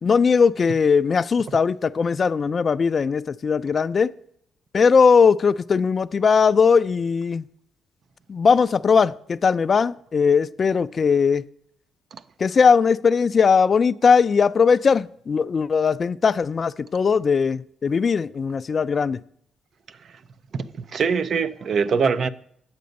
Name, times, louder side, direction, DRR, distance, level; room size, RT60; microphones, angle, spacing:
voice 1, 0.0-4.1 4.7-7.4 8.3-11.4 12.4-19.2, left 5 dB, 40° left, 0.3 m, -19 dB
voice 2, 20.5-22.3, right 5 dB, 55° right, 0.5 m, -23 dB
9.5 x 6.8 x 5.2 m
cardioid pair, 90°, 0 cm